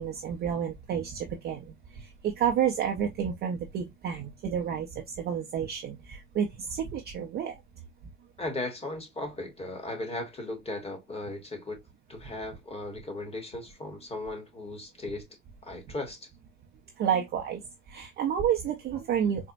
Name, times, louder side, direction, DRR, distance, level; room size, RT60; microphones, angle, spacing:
voice 1, 0.0-7.6 17.0-19.5, right 8 dB, 25° right, 0.4 m, -30 dB
voice 2, 8.4-11.8 12.1-15.3 15.6-16.3, left 2 dB, 15° left, 0.9 m, -37 dB
4.2 x 2.1 x 2.4 m
supercardioid pair, 115°, 46 cm